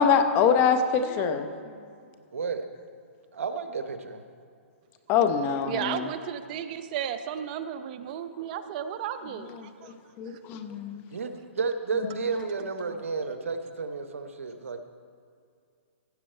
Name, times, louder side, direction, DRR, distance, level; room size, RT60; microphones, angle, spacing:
voice 1, 0.0-1.5 5.1-6.1 9.6-11.0, left 6 dB, 30° left, 0.8 m, -24 dB
voice 2, 2.3-2.6 3.3-4.2 11.1-14.8, right 4 dB, 85° right, 0.9 m, -32 dB
voice 3, 5.6-9.9 12.9-13.0, right 9 dB, 40° right, 0.6 m, -34 dB
15.5 x 7.5 x 4.4 m
hypercardioid pair, 145°, 7 cm